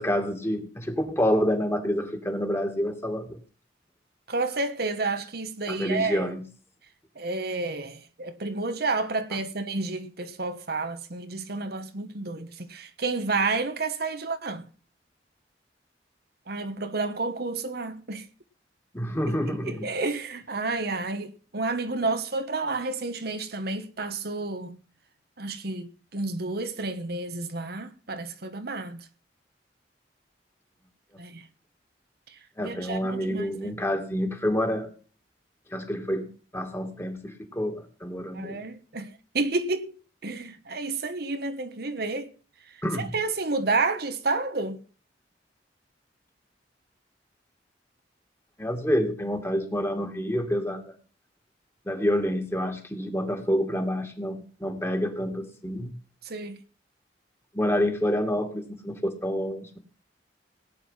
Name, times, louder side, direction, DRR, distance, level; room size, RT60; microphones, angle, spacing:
voice 1, 0.0-3.4 5.7-6.5 18.9-19.9 32.6-34.9 35.7-36.3 36.5-38.6 42.8-43.1 48.6-50.9 51.9-55.9 57.5-59.8, equal, 15° left, 2.4 m, -28 dB
voice 2, 4.3-6.3 7.2-14.7 16.5-18.3 19.5-24.8 25.4-29.0 31.2-31.4 32.3-32.4 32.6-33.7 38.3-39.9 40.2-42.3 43.0-44.8 56.2-56.6, right 3 dB, 60° right, 1.3 m, -30 dB
18.0 x 9.4 x 5.8 m
head